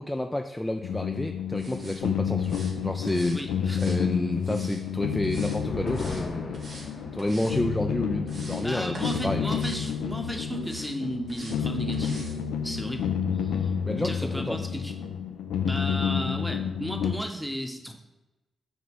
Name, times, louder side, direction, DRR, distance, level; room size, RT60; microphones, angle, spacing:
voice 1, 0.0-3.4 3.8-6.6 7.1-9.6 13.8-14.7, left 1 dB, 15° left, 5 dB, 0.4 m, -30 dB
sound 1, 0.8-17.1, left 7 dB, 85° left, 0.4 m, -30 dB
sound 2, 1.6-2.0 2.4-2.7 3.1-3.4 3.7-4.8 5.2-5.6 5.9-6.2 6.5-6.9 7.2-7.6 8.0-8.6 8.9-9.2 9.5-9.9 10.6-10.9 11.3-11.6 11.9-12.4 12.7-12.8, right 1 dB, 60° right, 1.6 m, -45 dB
voice 2, 3.3-3.8 8.6-12.3 12.6-13.1 13.3-13.7 14.0-15.0 15.6-18.0, equal, 5° right, 4 dB, 1.0 m, -34 dB
sound 3, 5.1-12.0 12.3-12.4 12.8-13.3, left 3 dB, 60° left, 0.9 m, -42 dB
6.0 x 2.9 x 5.3 m, 1.0 s
hypercardioid pair, 40°, 0 cm